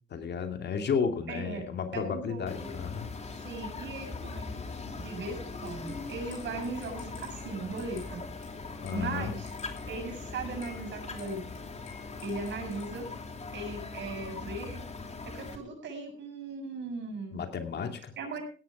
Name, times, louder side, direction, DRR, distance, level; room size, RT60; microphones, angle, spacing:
voice 1, 0.1-3.1 8.8-9.3 17.3-18.1, left 6 dB, 60° left, 6 dB, 2.6 m, -33 dB
voice 2, 1.3-1.6 1.9-2.7 3.4-4.5 5.0-8.2 8.9-9.5 9.9-11.4 12.2-13.1 13.5-14.8 15.3-17.4 18.2-18.4, right 3 dB, 65° right, 3 dB, 7.2 m, -38 dB
sound 1, 2.5-15.6, left 3 dB, 35° left, 2.8 m, -41 dB
sound 2, 5.6-12.9, left 5 dB, 90° left, 7.1 m, -54 dB
17.0 x 10.0 x 4.9 m, 0.39 s
cardioid pair, 90°, 20 cm